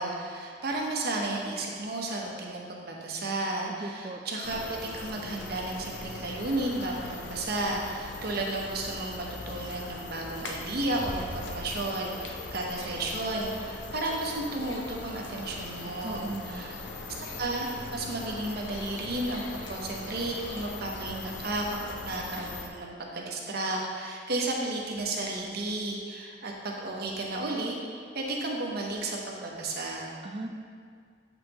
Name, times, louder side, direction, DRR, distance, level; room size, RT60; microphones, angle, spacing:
voice 1, 0.0-16.8 17.4-30.1, right 2 dB, 60° right, -1 dB, 1.0 m, -33 dB
voice 2, 3.7-4.2 16.0-16.7 30.2-30.5, right 2 dB, 30° right, 4 dB, 0.4 m, -37 dB
sound 1, 4.4-22.7, left 3 dB, 90° left, 0.6 m, -40 dB
8.0 x 5.3 x 3.0 m, 2.1 s
head